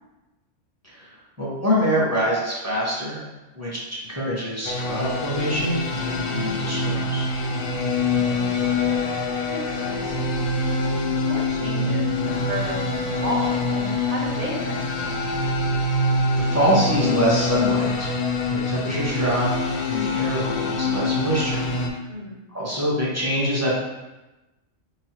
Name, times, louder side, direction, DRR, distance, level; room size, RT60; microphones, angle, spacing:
voice 1, 0.8-3.2 3.5-7.3 16.3-18.1 18.5-19.5 19.8-22.0 22.5-23.7, equal, 15° right, -7 dB, 1.0 m, -25 dB
sound 1, 4.6-21.9, left 3 dB, 60° left, 0.6 m, -25 dB
voice 2, 8.0-9.1 9.5-10.2 10.5-10.8 11.1-15.4 22.1-22.4, equal, 45° right, -4 dB, 0.9 m, -33 dB
4.6 x 3.0 x 2.9 m, 1.1 s
omnidirectional pair, 1.3 m